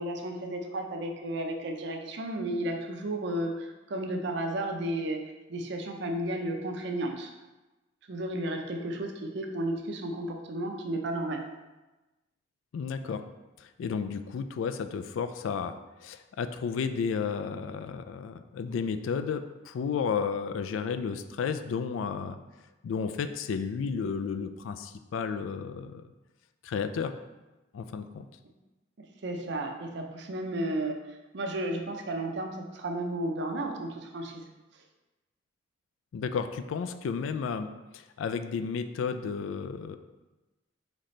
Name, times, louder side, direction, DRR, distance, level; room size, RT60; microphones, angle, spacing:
voice 1, 0.0-5.2 5.5-7.3 8.1-11.4 29.2-34.4, right 1 dB, 60° right, 4 dB, 0.5 m, -33 dB
voice 2, 12.7-13.2 13.6-15.8 16.0-22.4 22.8-26.1 26.6-27.2 27.7-28.3 36.1-40.0, left 6 dB, 80° left, 10 dB, 0.3 m, -32 dB
4.1 x 3.9 x 3.1 m, 1.1 s
head